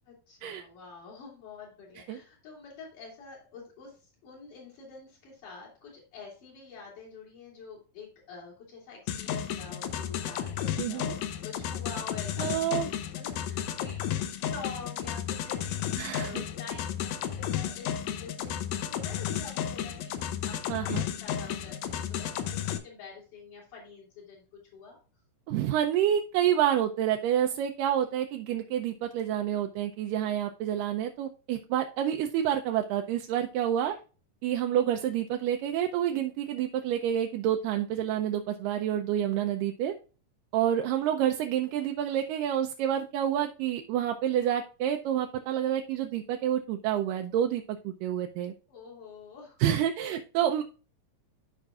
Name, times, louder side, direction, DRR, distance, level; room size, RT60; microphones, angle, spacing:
voice 1, 0.1-21.7 22.1-24.4 24.7-25.0 33.8-34.0 40.5-40.7 48.7-49.7, left 5 dB, 65° left, -5 dB, 4.0 m, -47 dB
sound 1, 9.1-22.8, left 9 dB, 80° left, 1.5 m, -33 dB
voice 2, 10.8-11.1 12.4-12.9 16.0-16.4 20.7-21.1 25.5-34.0 34.4-39.9 40.5-48.5 49.6-50.6, right 10 dB, 80° right, 4 dB, 2.2 m, -28 dB
13.5 x 5.1 x 2.4 m, 0.35 s
omnidirectional pair, 4.0 m